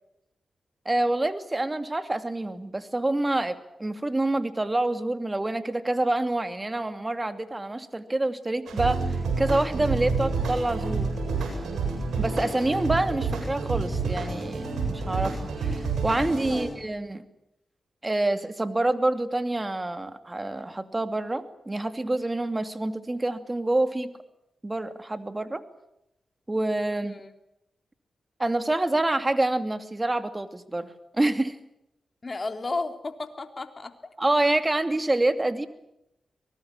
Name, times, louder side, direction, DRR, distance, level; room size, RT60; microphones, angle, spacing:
voice 1, 0.8-11.1 12.2-17.2 18.0-24.1 24.6-25.6 26.5-27.2 28.4-31.6 34.2-35.7, right 2 dB, 25° right, 10 dB, 2.6 m, -27 dB
sound 1, 8.7-16.7, right 4 dB, 85° right, 7.7 m, -29 dB
voice 2, 32.2-33.9, left 3 dB, 40° left, 7 dB, 3.5 m, -33 dB
24.0 x 20.0 x 8.7 m, 0.84 s
supercardioid pair, 45°, 0 cm